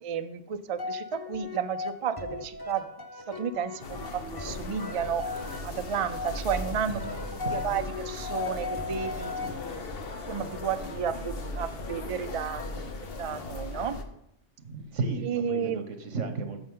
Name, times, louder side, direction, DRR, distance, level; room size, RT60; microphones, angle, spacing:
voice 1, 0.0-2.9 3.3-5.2 5.6-7.0 7.5-9.6 10.3-14.0 15.2-15.8, right 7 dB, 50° right, 10 dB, 0.4 m, -32 dB
sound 1, 0.8-10.1, left 4 dB, 20° left, 0.8 m, -38 dB
sound 2, 3.8-14.0, left 2 dB, 55° left, 1.1 m, -38 dB
voice 2, 6.7-7.7 14.6-16.6, right 4 dB, 90° right, 7 dB, 1.4 m, -34 dB
14.0 x 5.3 x 3.8 m, 0.79 s
omnidirectional pair, 1.2 m